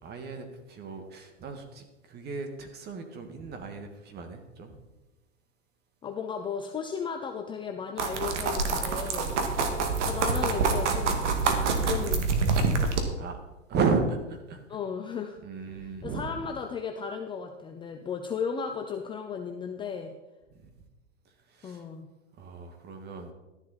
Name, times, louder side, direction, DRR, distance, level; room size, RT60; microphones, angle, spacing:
voice 1, 0.0-4.8 9.5-9.9 12.9-13.4 13.7-14.6 15.4-16.3 21.5-21.8 22.4-23.3, right 4 dB, 25° right, 6 dB, 1.7 m, -34 dB
voice 2, 6.0-9.7 10.0-11.2 11.7-12.3 14.7-15.4 15.8-20.1 21.6-22.1, left 6 dB, 15° left, 4 dB, 0.6 m, -35 dB
sound 1, 8.0-13.0, right 4 dB, 70° right, 2.1 m, -26 dB
13.0 x 10.5 x 4.1 m, 1.0 s
hypercardioid pair, 130°, 37 cm